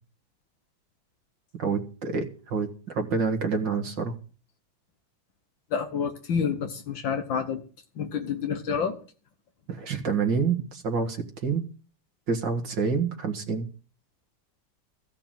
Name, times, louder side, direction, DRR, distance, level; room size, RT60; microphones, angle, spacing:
voice 1, 1.6-4.1 9.7-11.6 12.3-13.7, right 5 dB, 70° right, 4 dB, 2.4 m, -27 dB
voice 2, 5.7-7.6 8.0-9.0, left 6 dB, 75° left, 6 dB, 1.9 m, -28 dB
15.0 x 5.9 x 9.1 m, 0.39 s
omnidirectional pair, 2.1 m